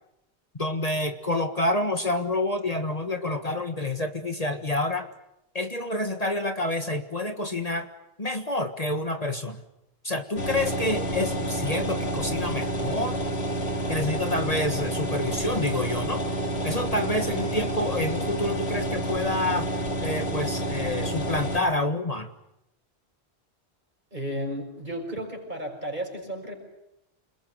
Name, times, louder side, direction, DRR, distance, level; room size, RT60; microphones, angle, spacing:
voice 1, 0.6-5.1 5.5-7.9 8.2-9.6 10.0-13.2 13.9-16.2 16.6-22.3, left 1 dB, 35° left, 7 dB, 1.7 m, -28 dB
sound 1, 10.4-21.6, right 1 dB, 80° left, 3.1 m, -29 dB
voice 2, 24.1-26.6, equal, 45° right, 3 dB, 6.2 m, -33 dB
28.0 x 21.0 x 9.4 m, 0.83 s
omnidirectional pair, 1.1 m